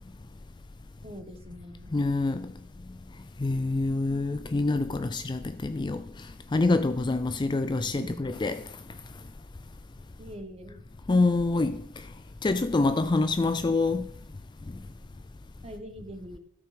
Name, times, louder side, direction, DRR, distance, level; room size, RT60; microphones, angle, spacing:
voice 1, 1.0-1.9 8.0-8.2 10.2-10.8 15.6-16.4, equal, 30° right, 1.3 m, -42 dB
voice 2, 1.9-2.5 3.4-8.7 11.1-12.1 12.4-14.1 14.7-14.8, left 3 dB, 20° left, 0.4 m, -26 dB
13.0 x 5.9 x 5.0 m
head